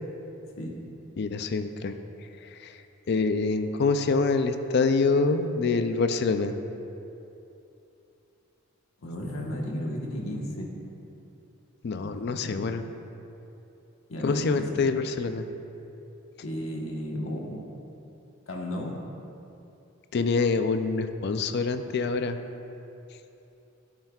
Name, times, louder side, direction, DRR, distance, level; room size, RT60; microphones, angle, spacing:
voice 1, 1.2-1.9 2.5-2.7 3.1-6.6 11.8-12.8 14.2-15.5 20.1-22.4, left 4 dB, 55° left, 8 dB, 0.4 m, -26 dB
voice 2, 9.0-10.7 11.9-12.6 14.1-14.6 16.4-17.6 18.5-19.0, equal, 80° left, -1 dB, 1.3 m, -34 dB
11.5 x 8.7 x 2.4 m, 2.8 s
head